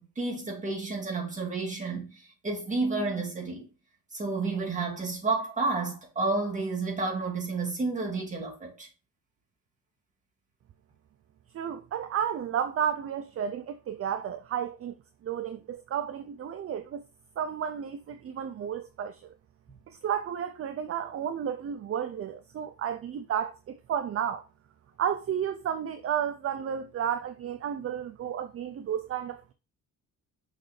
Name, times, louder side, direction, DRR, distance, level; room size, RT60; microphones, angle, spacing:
voice 1, 0.0-3.7 4.1-8.9, right 3 dB, 20° right, 2.3 m, -31 dB
voice 2, 11.5-14.9 15.2-17.0 17.4-19.3 19.9-24.4 25.0-29.5, right 8 dB, 40° right, 0.5 m, -32 dB
6.4 x 5.3 x 3.2 m
wide cardioid pair, 155°, 34 cm